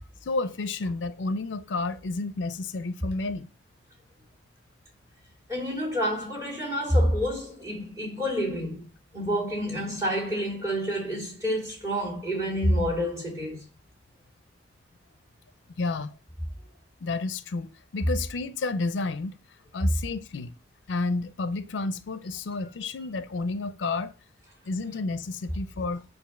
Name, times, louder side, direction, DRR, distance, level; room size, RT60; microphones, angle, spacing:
voice 1, 0.2-3.5 15.8-16.1 17.0-19.3 19.7-20.5 20.9-24.1 24.6-26.0, left 3 dB, 80° left, 0.5 m, -31 dB
voice 2, 5.5-8.8 9.1-13.6, equal, 15° right, 2.3 m, -28 dB
7.0 x 2.6 x 5.7 m
head